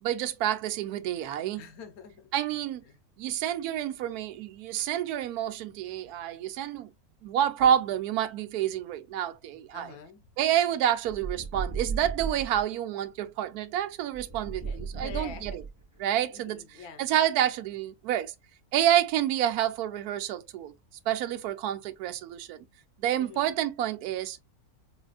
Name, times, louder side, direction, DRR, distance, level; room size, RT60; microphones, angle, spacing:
voice 1, 0.0-1.6 2.3-2.8 3.2-6.9 7.2-9.9 10.4-15.6 16.0-16.6 17.0-18.3 18.7-20.7 21.1-22.7 23.0-24.4, right 11 dB, 85° right, 1.1 m, -28 dB
voice 2, 1.5-2.3 2.9-3.0 6.2-6.3 9.7-10.2 14.6-15.6 16.3-17.0 23.2-23.5, left 5 dB, 75° left, 1.3 m, -46 dB
sound 1, 11.0-12.6 14.1-16.0, right 5 dB, 20° right, 0.5 m, -35 dB
5.0 x 2.4 x 2.3 m
omnidirectional pair, 1.6 m